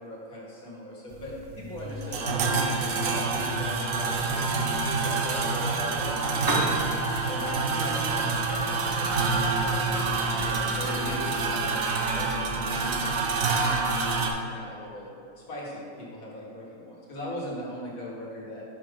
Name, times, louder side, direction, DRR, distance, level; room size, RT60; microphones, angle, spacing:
voice 1, 0.0-6.9 7.3-13.2 13.6-18.7, equal, 80° left, -5 dB, 2.0 m, -39 dB
sound 1, 1.1-14.3, right 3 dB, 70° right, 1.1 m, -27 dB
Piano, 6.2-14.2, right 1 dB, 25° right, 0.4 m, -39 dB
5.7 x 5.1 x 5.1 m, 2.6 s
omnidirectional pair, 1.5 m